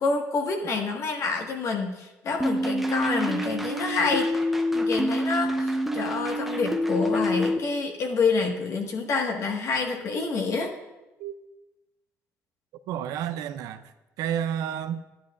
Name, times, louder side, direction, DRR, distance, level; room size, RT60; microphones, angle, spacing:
voice 1, 0.0-4.3 4.7-10.7, left 4 dB, 55° left, 1.6 m, -27 dB
sound 1, 2.4-7.6, equal, ahead, 0.9 m, -27 dB
voice 2, 12.9-15.0, right 9 dB, 80° right, 0.5 m, -31 dB
12.5 x 10.0 x 2.5 m
supercardioid pair, 80°, 6 cm